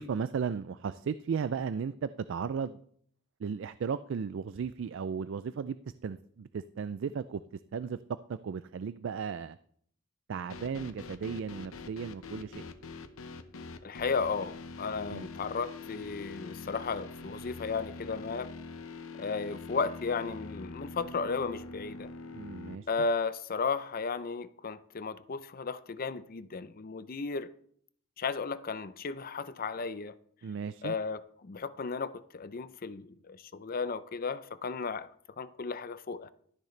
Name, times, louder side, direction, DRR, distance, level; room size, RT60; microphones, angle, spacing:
voice 1, 0.0-2.8 3.4-5.8 6.0-7.4 7.7-8.0 8.3-9.6 10.3-12.6 15.1-15.3 22.3-22.9 30.4-30.9, right 6 dB, 65° right, 0.3 m, -35 dB
sound 1, 10.5-22.8, left 3 dB, 85° left, 0.9 m, -44 dB
voice 2, 13.8-18.5 19.2-22.1 22.9-27.5 28.2-30.1 30.8-35.1 35.4-36.3, left 4 dB, 45° left, 0.5 m, -34 dB
12.5 x 10.5 x 3.3 m
head